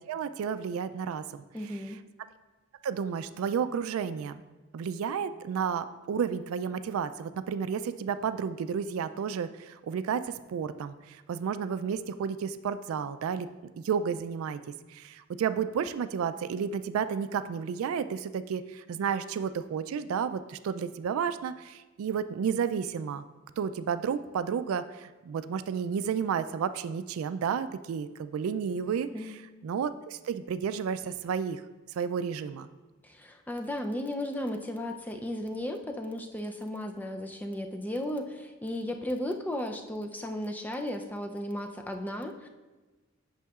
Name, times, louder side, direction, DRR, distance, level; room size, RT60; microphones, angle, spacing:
voice 1, 0.1-1.8 2.8-4.4 4.7-13.5 13.8-14.6 14.9-23.2 23.6-31.6 31.9-32.7, right 7 dB, 85° right, 13 dB, 0.3 m, -32 dB
voice 2, 1.5-2.0 29.1-29.3 33.0-42.5, left 1 dB, 10° left, 4 dB, 0.4 m, -35 dB
8.3 x 6.2 x 2.4 m, 1.2 s
head